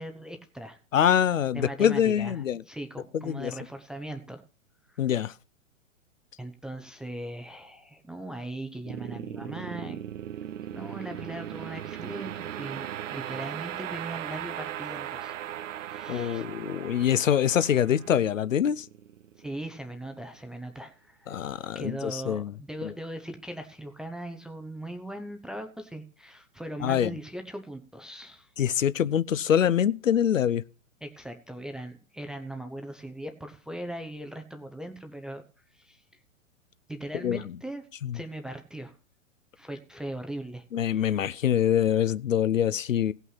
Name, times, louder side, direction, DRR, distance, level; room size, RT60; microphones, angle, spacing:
voice 1, 0.0-0.8 1.5-2.3 2.7-4.4 5.1-5.2 6.4-10.1 10.7-16.4 19.4-21.4 21.7-28.5 31.0-35.4 35.7-36.0 36.9-37.8 38.1-38.9 39.6-41.3, right 1 dB, ahead, 0.5 m, -39 dB
voice 2, 0.9-2.6 3.1-3.5 5.0-5.3 16.1-18.9 21.3-22.5 22.8-22.9 26.8-27.1 28.6-30.6 37.2-37.6 38.0-38.2 40.7-43.1, left 9 dB, 70° left, 0.7 m, -25 dB
sound 1, 8.9-20.1, right 11 dB, 65° right, 0.5 m, -38 dB
16.5 x 5.7 x 5.7 m
figure-of-eight pair, 110°, 40 cm